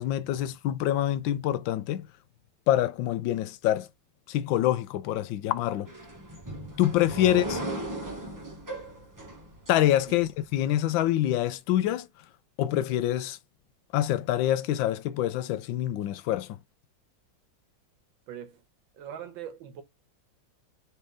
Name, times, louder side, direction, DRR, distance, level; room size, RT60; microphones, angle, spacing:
voice 1, 0.0-2.1 2.7-3.9 4.3-5.9 6.8-7.6 9.7-12.1 12.6-13.4 13.9-16.6, left 13 dB, 85° left, 1.3 m, -26 dB
sound 1, 5.9-10.5, right 1 dB, 15° right, 0.8 m, -37 dB
voice 2, 18.3-18.6 18.9-19.8, right 9 dB, 80° right, 1.7 m, -41 dB
4.3 x 3.2 x 3.6 m
omnidirectional pair, 2.1 m